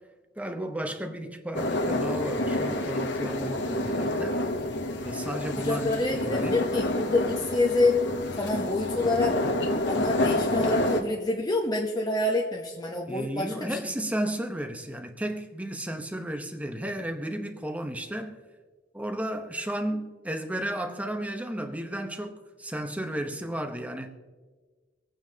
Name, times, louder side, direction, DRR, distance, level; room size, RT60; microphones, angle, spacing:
voice 1, 0.4-4.4 5.0-6.6 13.1-18.4 18.9-24.1, right 1 dB, 10° right, 1.0 m, -33 dB
sound 1, 1.5-11.0, left 1 dB, 70° left, 1.3 m, -28 dB
voice 2, 5.6-8.0 8.4-9.4 9.8-13.8, left 2 dB, 20° left, 1.0 m, -27 dB
24.5 x 9.2 x 2.9 m
head